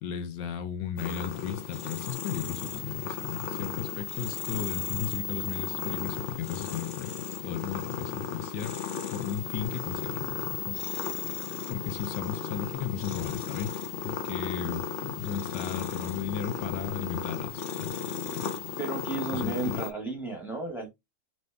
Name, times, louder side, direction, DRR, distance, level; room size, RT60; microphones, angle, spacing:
voice 1, 0.0-8.8 9.1-10.8 11.7-13.8 14.0-18.5 19.3-19.8, left 9 dB, 80° left, 1.3 m, -35 dB
sound 1, 1.0-19.9, left 7 dB, 60° left, 0.8 m, -35 dB
voice 2, 18.8-20.9, right 2 dB, ahead, 1.2 m, -33 dB
4.1 x 3.2 x 3.3 m
omnidirectional pair, 1.9 m